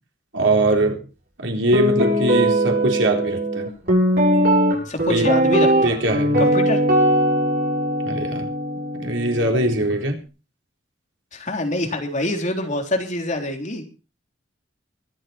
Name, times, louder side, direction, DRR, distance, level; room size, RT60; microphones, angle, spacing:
voice 1, 0.3-1.0 1.4-3.7 5.1-5.3 5.8-6.5 8.0-8.5 9.0-10.2, right 1 dB, 75° right, 2 dB, 4.1 m, -21 dB
Guitar, 1.7-9.9, right 1 dB, 55° right, 6.9 m, -20 dB
voice 2, 4.9-6.0 6.4-6.9 11.3-13.8, left 1 dB, 40° left, 3 dB, 3.7 m, -25 dB
23.5 x 8.9 x 4.4 m, 0.35 s
head